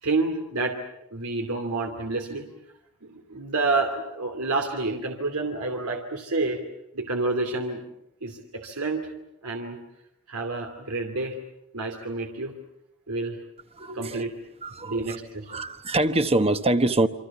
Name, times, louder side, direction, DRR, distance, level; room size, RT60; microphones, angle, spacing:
voice 1, 0.0-0.8 1.1-2.5 3.0-6.6 6.9-7.9 8.2-9.1 9.4-9.8 10.3-11.4 11.7-12.5 13.1-13.4 13.9-14.3 14.8-15.6, right 3 dB, 90° right, 2.7 m, -29 dB
voice 2, 13.8-14.2 14.6-15.2 15.5-17.1, right 2 dB, 25° right, 1.1 m, -24 dB
27.5 x 25.0 x 7.2 m
head